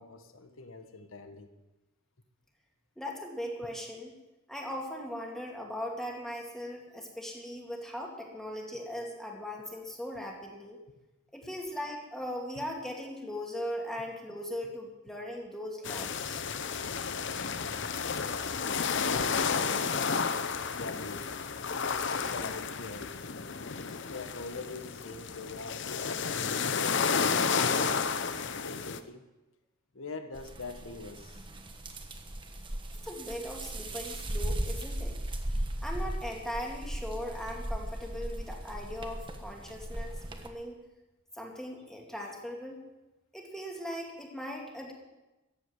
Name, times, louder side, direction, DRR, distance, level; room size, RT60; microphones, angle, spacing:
voice 1, 0.0-1.5 12.5-12.7 19.1-19.8 20.6-21.2 21.8-23.2 24.1-29.2 29.9-31.5, left 3 dB, 75° left, 8 dB, 1.5 m, -44 dB
voice 2, 3.0-4.1 4.5-10.8 11.3-16.4 16.9-17.0 33.0-35.1 35.8-40.8 41.3-42.8 43.3-44.9, equal, ahead, 0 dB, 2.4 m, -39 dB
sound 1, 15.8-29.0, left 5 dB, 60° left, 0.8 m, -31 dB
sound 2, 30.3-40.5, right 1 dB, 25° right, 1.3 m, -37 dB
14.5 x 8.4 x 9.4 m, 1.0 s
head